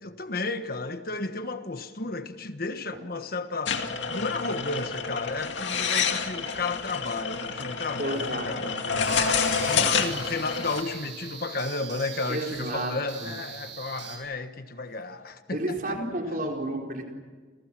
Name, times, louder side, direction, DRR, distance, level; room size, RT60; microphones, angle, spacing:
voice 1, 0.0-16.0, left 3 dB, 50° left, 9 dB, 1.4 m, -33 dB
sound 1, 3.7-10.8, left 5 dB, 70° left, 2.3 m, -28 dB
voice 2, 8.0-8.5 12.3-13.3 15.5-17.0, right 1 dB, 45° right, 1 dB, 4.5 m, -32 dB
Piano, 8.2-11.3 11.8-11.9, equal, 85° left, 4.0 m, -44 dB
sound 2, 9.0-14.2, right 8 dB, 75° right, 6.3 m, -42 dB
29.0 x 28.5 x 6.2 m, 1.5 s
head